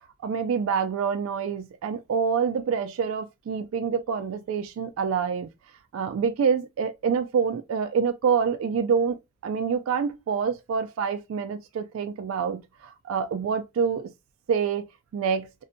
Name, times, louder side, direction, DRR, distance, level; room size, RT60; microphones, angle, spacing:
voice 1, 0.2-5.5 5.9-9.2 9.4-14.1 14.5-14.8 15.1-15.5, right 6 dB, 80° right, 0.3 m, -26 dB
2.6 x 2.1 x 2.5 m
head